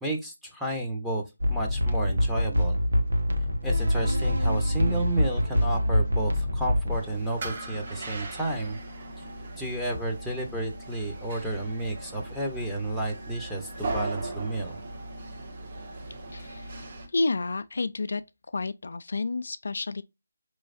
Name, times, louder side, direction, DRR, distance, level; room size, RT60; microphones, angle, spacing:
voice 1, 0.0-1.2 1.5-2.8 3.6-8.8 9.6-14.8, right 1 dB, ahead, 0.8 m, -31 dB
sound 1, 1.4-7.0, left 1 dB, 75° right, 1.0 m, -25 dB
sound 2, 6.9-17.1, right 2 dB, 40° right, 1.4 m, -38 dB
voice 2, 16.3-18.2 18.5-20.0, left 3 dB, 65° left, 0.3 m, -30 dB
4.6 x 3.1 x 2.6 m
figure-of-eight pair, 160°, 0 cm